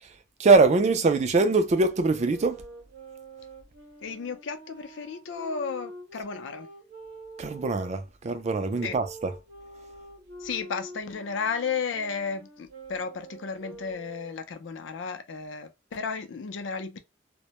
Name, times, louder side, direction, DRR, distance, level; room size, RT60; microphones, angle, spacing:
voice 1, 0.0-2.6 7.4-9.3, right 3 dB, 35° right, 0.3 m, -23 dB
Wind instrument woodwind instrument, 2.1-7.9 8.7-14.5, right 1 dB, 55° right, 0.7 m, -46 dB
voice 2, 4.0-6.7 8.8-9.0 10.4-17.0, left 5 dB, 70° left, 0.4 m, -33 dB
2.1 x 2.0 x 2.8 m
head